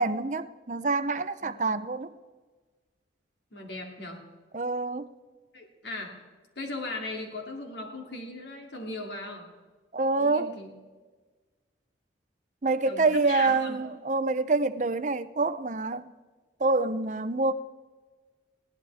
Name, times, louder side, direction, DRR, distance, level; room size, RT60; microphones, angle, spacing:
voice 1, 0.0-2.1 4.5-5.1 9.9-10.5 12.6-16.1 16.6-17.5, right 3 dB, 40° right, 0.6 m, -26 dB
voice 2, 1.4-1.7 3.5-4.2 5.5-6.2 6.5-9.5 10.2-10.7 12.8-13.8, left 2 dB, 70° left, 2.9 m, -38 dB
21.0 x 16.5 x 3.5 m
head